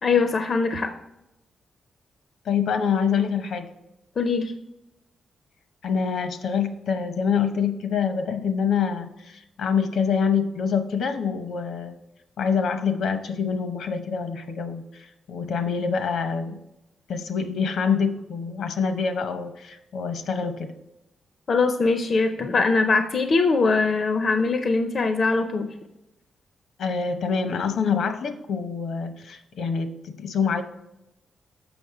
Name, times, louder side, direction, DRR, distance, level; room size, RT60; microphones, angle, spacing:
voice 1, 0.0-0.9 4.2-4.5 21.5-25.7, left 4 dB, 40° left, 8 dB, 0.4 m, -22 dB
voice 2, 2.4-3.7 5.8-12.0 12.4-16.6 17.1-20.7 26.8-30.6, left 6 dB, 70° left, 8 dB, 0.8 m, -26 dB
7.1 x 5.9 x 4.8 m, 0.90 s
wide cardioid pair, 175°, 0 cm